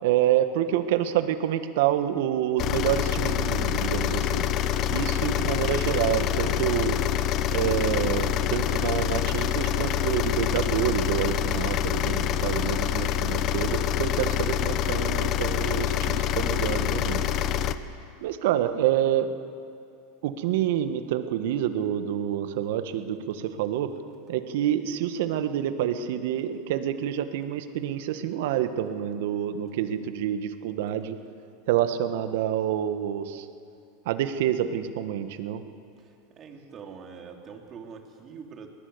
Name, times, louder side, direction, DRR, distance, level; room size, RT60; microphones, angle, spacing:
voice 1, 0.0-4.4 4.9-7.0 7.5-17.2 18.2-19.4 20.2-23.9 24.3-31.2 31.7-33.5 34.0-35.6, right 11 dB, 70° right, 10 dB, 1.5 m, -27 dB
sound 1, 2.6-17.7, left 10 dB, 45° left, 1.0 m, -26 dB
voice 2, 36.0-38.7, right 6 dB, 35° right, 2 dB, 3.3 m, -44 dB
22.5 x 19.0 x 8.1 m, 2.5 s
hypercardioid pair, 105°, 0 cm